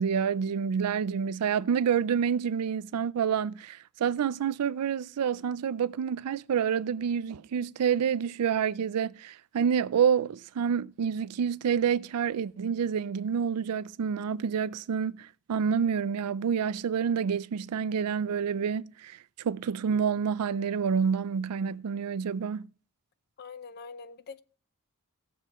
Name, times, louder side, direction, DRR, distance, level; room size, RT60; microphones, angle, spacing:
voice 1, 0.0-22.7, right 7 dB, 90° right, 0.4 m, -28 dB
voice 2, 23.4-24.4, left 5 dB, 45° left, 0.5 m, -44 dB
17.5 x 6.8 x 3.0 m
head